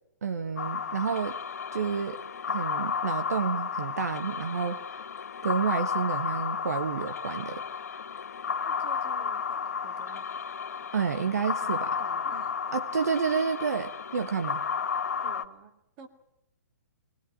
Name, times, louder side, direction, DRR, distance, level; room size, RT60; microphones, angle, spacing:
voice 1, 0.2-1.4 1.7-2.2 2.5-4.8 5.4-7.6 10.9-11.9 12.7-14.6, right 6 dB, 70° right, 9 dB, 1.4 m, -29 dB
sound 1, 0.6-15.4, left 6 dB, 65° left, 1.3 m, -33 dB
voice 2, 8.6-10.3 10.8-10.9 11.6-12.8 15.1-16.1, right 6 dB, 35° right, 6 dB, 2.5 m, -50 dB
21.5 x 19.5 x 8.9 m, 0.82 s
figure-of-eight pair, 130°, 9 cm